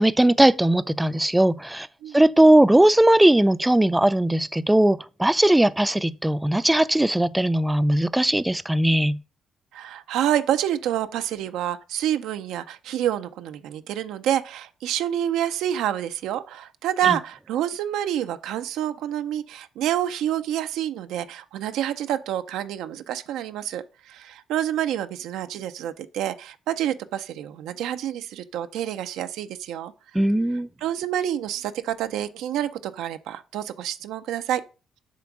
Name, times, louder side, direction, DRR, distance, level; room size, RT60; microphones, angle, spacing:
voice 1, 0.0-1.9 2.1-9.2 17.1-17.2 30.1-30.7, right 1 dB, 10° right, 0.4 m, -19 dB
voice 2, 9.7-29.9 30.8-34.6, right 11 dB, 85° right, 0.5 m, -28 dB
7.4 x 3.4 x 5.9 m
cardioid pair, 85°, 0 cm